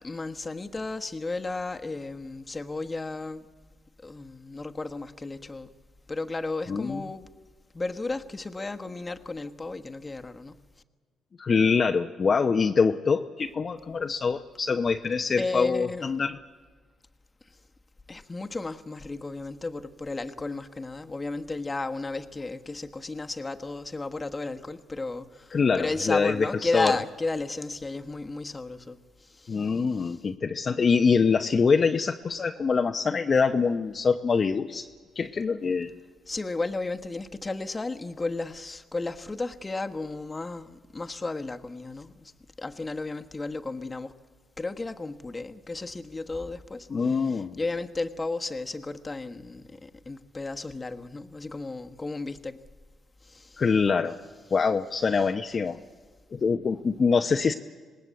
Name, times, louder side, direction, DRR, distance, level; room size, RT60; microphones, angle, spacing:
voice 1, 0.0-3.5 4.0-5.7 6.1-7.3 7.7-10.6 15.4-16.1 17.4-17.6 18.1-30.2 36.3-42.3 42.6-44.1 44.6-52.6 53.2-53.6, left 3 dB, 20° left, 1.3 m, -34 dB
voice 2, 6.7-7.0 11.4-16.4 25.5-26.9 29.5-34.9 35.2-35.9 46.9-47.6 53.6-54.2 54.5-55.8 56.3-57.5, left 5 dB, 40° left, 0.8 m, -24 dB
26.5 x 19.5 x 8.3 m
cardioid pair, 90°, 0 cm